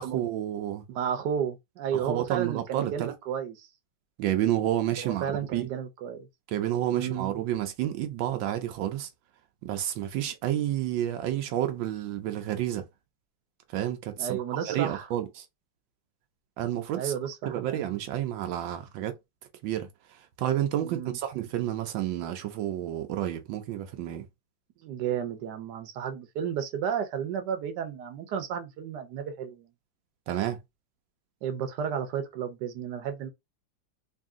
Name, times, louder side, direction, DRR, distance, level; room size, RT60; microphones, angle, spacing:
voice 1, 0.0-0.8 1.9-3.1 4.2-5.3 5.5-5.7 6.5-9.1 9.6-12.9 13.7-15.5 16.6-17.1 17.4-19.2 19.6-24.2 30.3-30.6, right 12 dB, 85° right, 1.4 m, -30 dB
voice 2, 0.9-3.7 5.0-6.3 6.9-7.3 14.2-15.1 16.9-17.8 20.8-21.2 24.8-29.7 31.4-33.3, right 8 dB, 70° right, 1.4 m, -32 dB
3.4 x 2.6 x 3.6 m
omnidirectional pair, 2.0 m